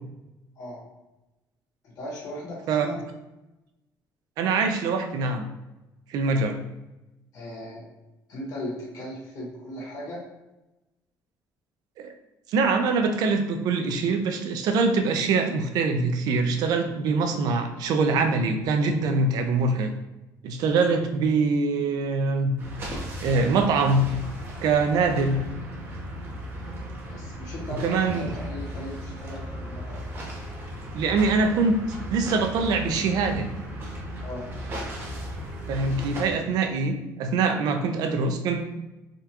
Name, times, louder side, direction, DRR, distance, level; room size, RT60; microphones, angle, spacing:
voice 1, 1.8-3.0 7.3-7.9 8.3-10.2 27.1-30.0 34.2-34.5, left 1 dB, 60° left, -4 dB, 1.3 m, -37 dB
voice 2, 4.4-5.5 6.1-6.6 12.0-12.1 12.5-19.9 20.4-22.5 23.2-24.1 24.6-25.4 27.8-28.3 30.9-31.8 32.1-33.5 35.7-38.7, right 4 dB, 65° right, 6 dB, 0.4 m, -23 dB
sound 1, 22.6-36.4, equal, 30° right, 0.7 m, -36 dB
3.6 x 2.3 x 2.8 m, 0.99 s
cardioid pair, 170°, 7 cm